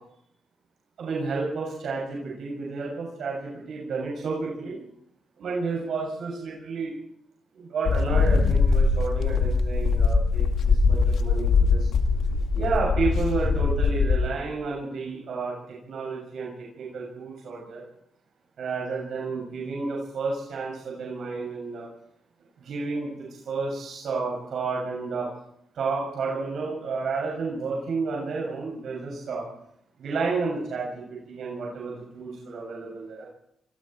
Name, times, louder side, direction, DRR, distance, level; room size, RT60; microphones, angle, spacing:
voice 1, 1.0-4.8 5.4-6.9 7.5-11.9 12.5-15.5 15.9-16.5 16.8-17.8 18.6-21.9 22.6-23.1 23.5-25.3 25.7-29.4 30.0-33.2, right 4 dB, 70° right, -3 dB, 6.9 m, -31 dB
sound 1, 7.8-14.3, left 4 dB, 75° left, 2.2 m, -22 dB
26.5 x 22.5 x 4.5 m, 0.74 s
cardioid pair, 100°, 0 cm